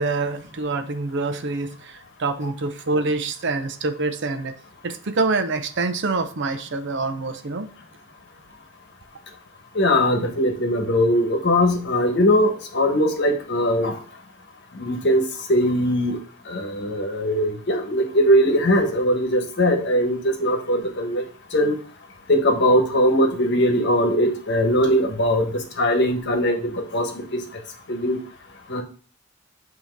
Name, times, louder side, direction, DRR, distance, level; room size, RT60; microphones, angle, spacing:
voice 1, 0.0-4.5 4.8-7.7, right 3 dB, 60° right, 9 dB, 0.6 m, -26 dB
voice 2, 9.7-13.9 14.8-15.2 15.5-16.2 16.5-21.2 21.5-21.7 22.3-25.5 25.8-27.4 27.9-28.2 28.7-28.8, equal, 55° left, 4 dB, 1.1 m, -20 dB
7.9 x 2.9 x 4.5 m, 0.42 s
head